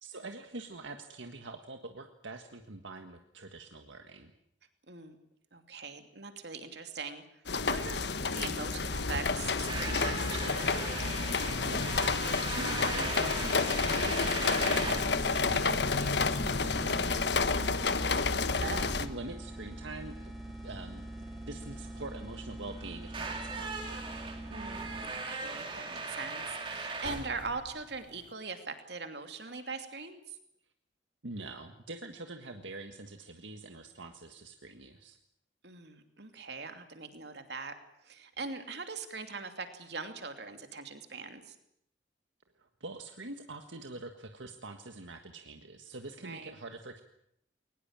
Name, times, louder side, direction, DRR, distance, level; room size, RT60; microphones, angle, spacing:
voice 1, 0.0-4.3 11.6-18.3 19.0-20.3 20.6-21.1 21.5-24.0 31.2-35.2 42.6-47.0, right 2 dB, 80° right, 6 dB, 1.7 m, -45 dB
voice 2, 5.5-7.2 7.6-10.9 15.3-15.7 18.6-19.0 24.5-30.4 35.6-37.7 38.0-41.5 46.2-46.5, right 4 dB, 65° right, 7 dB, 2.8 m, -41 dB
sound 1, 7.5-19.1, left 4 dB, 65° left, 1.3 m, -30 dB
sound 2, 9.4-28.3, right 3 dB, 25° right, 3.0 m, -40 dB
sound 3, 14.0-25.4, right 1 dB, ahead, 4.2 m, -44 dB
22.0 x 20.0 x 8.8 m, 0.74 s
head